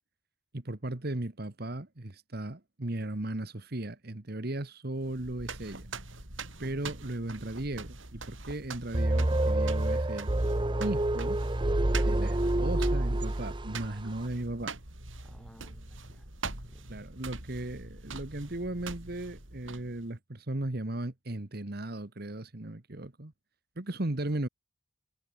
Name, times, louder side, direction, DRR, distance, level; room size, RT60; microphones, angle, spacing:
voice 1, 0.5-5.9 6.6-10.3 10.8-11.4 12.0-14.8 16.9-23.3 23.8-24.5, right 1 dB, 50° right, 1.5 m, -36 dB
sound 1, 5.0-20.1, right 3 dB, 80° right, 5.1 m, -43 dB
sound 2, 8.9-13.9, right 1 dB, 25° right, 0.8 m, -27 dB
voice 2, 15.2-16.3 16.6-17.1, equal, 5° left, 7.5 m, -58 dB
head